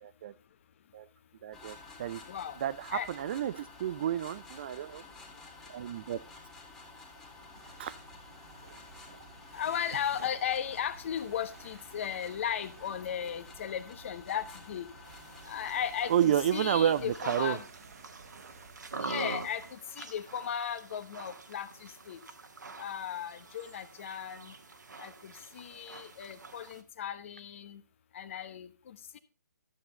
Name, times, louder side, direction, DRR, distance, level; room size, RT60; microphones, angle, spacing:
voice 1, 0.0-0.3 0.9-1.1 1.4-2.2 2.6-5.0 5.7-6.2 7.8-7.9 16.1-17.6, right 10 dB, 35° right, 16 dB, 0.4 m, -30 dB
sound 1, 1.5-17.2, left 3 dB, 5° left, 2.1 m, -52 dB
voice 2, 2.3-2.6 2.9-3.1 9.5-14.9 15.4-17.6 19.0-22.2 22.8-24.5 25.0-27.8 28.1-29.2, left 9 dB, 40° left, 12 dB, 1.0 m, -36 dB
sound 2, 7.5-19.7, right 5 dB, 55° right, 1.4 m, -54 dB
sound 3, 15.1-26.8, right 3 dB, 75° right, 1.5 m, -45 dB
12.5 x 7.8 x 3.9 m, 0.32 s
figure-of-eight pair, 140°, 10 cm